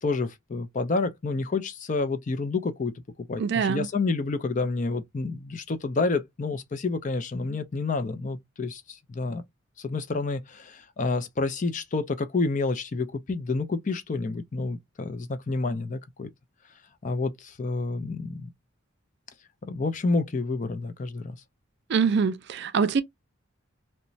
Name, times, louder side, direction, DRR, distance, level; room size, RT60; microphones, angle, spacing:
voice 1, 0.0-2.9 3.2-9.4 9.8-16.3 17.0-18.5 19.7-21.4, left 3 dB, 35° left, 0.4 m, -29 dB
voice 2, 3.4-3.9 21.9-23.0, right 6 dB, 55° right, 0.3 m, -24 dB
2.9 x 2.1 x 2.6 m
head